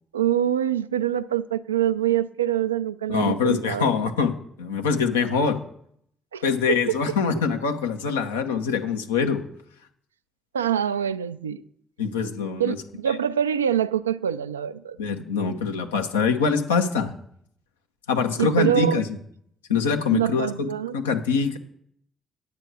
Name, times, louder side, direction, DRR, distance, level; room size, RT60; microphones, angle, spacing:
voice 1, 0.1-3.9 6.3-6.8 10.5-11.6 12.6-15.0 18.4-19.0 20.1-21.0, right 10 dB, 85° right, 0.3 m, -25 dB
voice 2, 3.1-4.3 4.6-5.6 6.4-9.4 12.0-12.8 15.0-17.1 18.1-19.0 19.7-20.5 20.9-21.6, left 5 dB, 85° left, 0.8 m, -24 dB
9.6 x 8.0 x 4.7 m
figure-of-eight pair, 45°, 0 cm